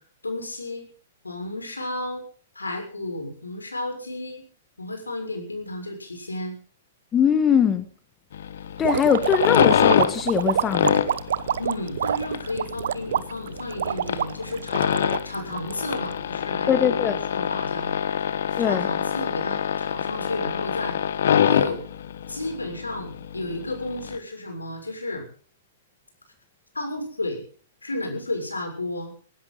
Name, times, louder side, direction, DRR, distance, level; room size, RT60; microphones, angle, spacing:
voice 1, 0.2-0.9 1.2-2.2 2.5-4.4 4.8-6.6 11.6-18.0 18.6-21.0 21.4-21.8 22.3-25.3 26.7-27.4 27.8-29.1, left 2 dB, 85° left, 5 dB, 6.5 m, -32 dB
voice 2, 7.1-7.9 8.8-11.0 16.7-17.1 18.6-18.9, left 8 dB, 20° left, 9 dB, 2.0 m, -21 dB
sound 1, 8.3-24.2, left 9 dB, 60° left, 1.5 m, -25 dB
sound 2, 8.8-16.2, right 9 dB, 60° right, 1.0 m, -27 dB
20.0 x 17.0 x 4.0 m, 0.42 s
figure-of-eight pair, 110°, 0 cm